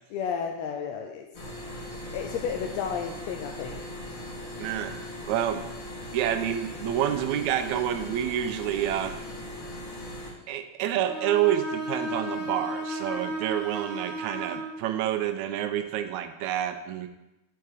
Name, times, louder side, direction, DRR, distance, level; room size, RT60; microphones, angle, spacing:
voice 1, 0.1-1.3 2.1-3.8, left 7 dB, 80° left, 3 dB, 1.6 m, -32 dB
sound 1, 1.3-10.3, left 1 dB, 30° left, 1.9 m, -39 dB
voice 2, 4.6-5.0 5.3-5.6 6.1-9.2 10.5-17.1, right 11 dB, 80° right, 9 dB, 1.8 m, -28 dB
Bowed string instrument, 11.0-14.7, right 1 dB, 50° left, 2.6 m, -34 dB
10.5 x 4.5 x 4.8 m, 0.96 s
omnidirectional pair, 3.5 m